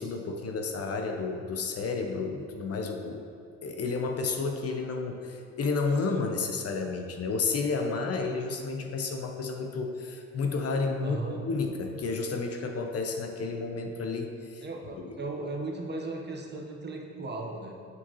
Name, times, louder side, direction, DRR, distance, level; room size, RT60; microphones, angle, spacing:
voice 1, 0.0-3.2 3.6-14.6 15.0-15.1, left 4 dB, 55° left, 4 dB, 0.8 m, -31 dB
voice 2, 11.0-11.4 14.6-17.7, right 2 dB, 35° right, 0 dB, 1.1 m, -36 dB
7.4 x 6.4 x 3.1 m, 2.5 s
cardioid pair, 90°, 30 cm